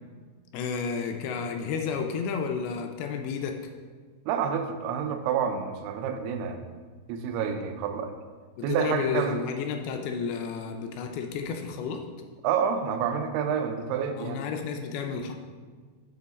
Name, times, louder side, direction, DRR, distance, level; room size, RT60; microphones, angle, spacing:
voice 1, 0.5-3.6 8.6-12.0 14.2-15.3, left 6 dB, 80° left, 4 dB, 2.4 m, -31 dB
voice 2, 4.3-6.8 7.1-8.1 8.6-9.4 12.4-14.4, right 7 dB, 85° right, 7 dB, 2.6 m, -28 dB
7.4 x 4.8 x 4.0 m, 1.5 s
omnidirectional pair, 4.6 m